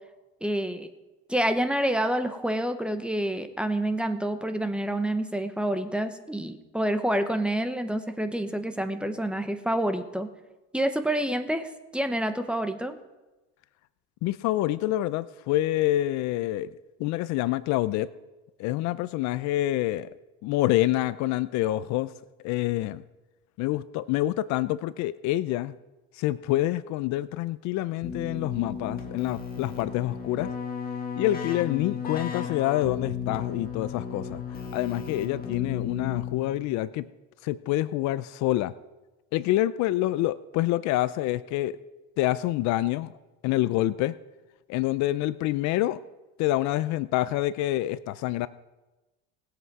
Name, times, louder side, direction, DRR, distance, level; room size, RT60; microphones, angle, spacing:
voice 1, 0.4-0.9 1.3-10.3 10.7-12.9, right 1 dB, 5° right, 8 dB, 0.9 m, -28 dB
voice 2, 14.2-16.7 17.0-18.1 18.6-20.1 20.4-22.1 22.4-23.0 23.6-25.7 26.1-30.5 31.2-34.4 34.7-37.1 37.4-38.7 39.3-41.8 42.2-43.1 43.4-44.1 44.7-46.0 46.4-48.5, left 15 dB, 60° left, 16 dB, 0.5 m, -27 dB
Keyboard (musical), 28.0-36.7, left 6 dB, 30° left, 2.1 m, -34 dB
19.5 x 8.0 x 4.8 m, 1.1 s
cardioid pair, 125°, 32 cm